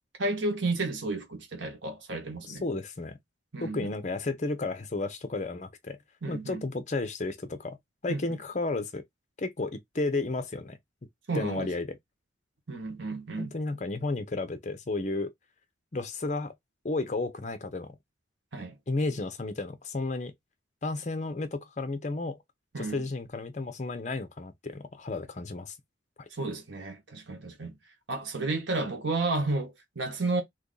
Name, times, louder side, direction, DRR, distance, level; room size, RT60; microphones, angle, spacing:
voice 1, 0.2-2.6 3.5-3.9 6.2-6.6 8.1-8.2 11.3-11.7 12.7-13.5 18.5-18.7 22.7-23.0 26.4-27.8 28.1-30.4, right 2 dB, 80° right, 1.3 m, -32 dB
voice 2, 2.4-3.2 3.6-6.0 6.3-7.8 8.0-9.0 9.4-10.8 11.3-12.0 13.4-15.3 15.9-16.5 16.8-18.0 18.9-20.3 20.8-22.4 22.8-25.8 26.2-26.3, left 3 dB, 40° left, 0.6 m, -32 dB
2.8 x 2.6 x 3.8 m
head